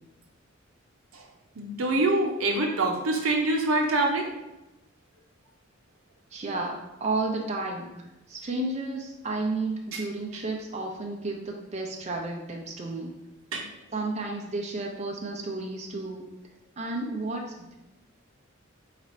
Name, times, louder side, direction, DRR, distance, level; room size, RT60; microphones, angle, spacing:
voice 1, 1.6-4.3 9.9-10.0 13.5-13.7, right 2 dB, 90° right, 1 dB, 0.8 m, -25 dB
voice 2, 6.3-13.2 13.9-16.3 16.8-17.7, right 2 dB, 35° right, 0 dB, 0.5 m, -32 dB
4.0 x 2.5 x 4.3 m, 0.96 s
head